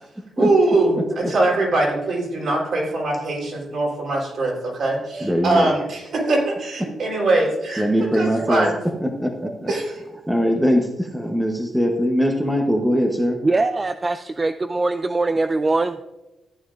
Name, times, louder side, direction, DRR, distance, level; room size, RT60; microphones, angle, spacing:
voice 1, 0.4-7.8 8.1-8.8 9.7-10.0, right 2 dB, 60° right, -2 dB, 3.6 m, -22 dB
sound 1, 1.9-2.1 3.0-3.1 4.1-4.2 5.1-5.3 6.2-6.4 7.3-7.4 8.3-8.5 9.4-9.6, right 2 dB, 80° right, 1.0 m, -35 dB
voice 2, 5.2-5.7 7.8-8.7 9.0-9.7 10.3-13.4, equal, 5° right, 2 dB, 0.9 m, -21 dB
voice 3, 13.4-16.0, right 3 dB, 20° right, 10 dB, 0.3 m, -22 dB
14.5 x 9.6 x 2.5 m, 1.0 s
wide cardioid pair, 155°, 0 cm